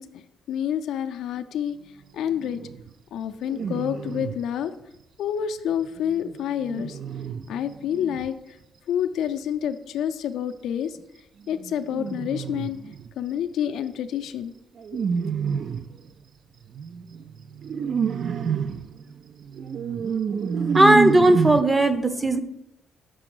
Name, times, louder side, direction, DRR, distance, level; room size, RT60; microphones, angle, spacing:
voice 1, 0.0-1.8 2.1-2.6 3.1-4.7 5.2-7.0 7.5-8.6 8.9-11.0 11.5-12.8 13.2-14.5 14.9-15.3, left 9 dB, 80° left, 0.4 m, -28 dB
sound 1, 2.3-2.9 3.4-4.5 5.9-8.3 11.6-13.1 14.8-16.0 16.7-21.6, right 7 dB, 60° right, 0.3 m, -28 dB
voice 2, 20.7-22.4, right 1 dB, 15° right, 0.6 m, -17 dB
6.1 x 3.9 x 6.1 m
cardioid pair, 90°, 0 cm